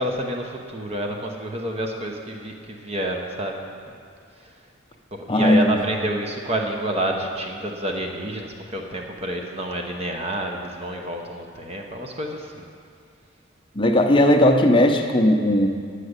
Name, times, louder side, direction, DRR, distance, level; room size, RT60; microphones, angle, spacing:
voice 1, 0.0-3.7 5.1-12.6, right 1 dB, 30° right, 2 dB, 0.9 m, -28 dB
voice 2, 5.3-5.8 13.7-15.7, left 1 dB, 25° left, 3 dB, 0.7 m, -17 dB
10.0 x 6.5 x 8.1 m, 2.2 s
head